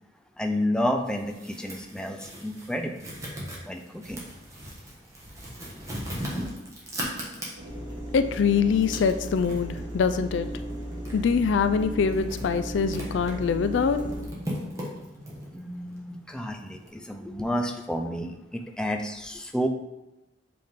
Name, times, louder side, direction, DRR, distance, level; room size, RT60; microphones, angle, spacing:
voice 1, 0.4-3.1 3.6-4.2 15.5-19.7, equal, 5° left, 3 dB, 0.4 m, -30 dB
sound 1, 1.1-7.9 8.3-16.9, equal, 15° right, 1.2 m, -39 dB
sound 2, 7.6-14.2, right 1 dB, 65° right, 1.6 m, -36 dB
voice 2, 8.1-10.5 11.1-14.0, left 6 dB, 70° left, 10 dB, 0.3 m, -24 dB
7.7 x 3.4 x 3.6 m, 0.98 s
head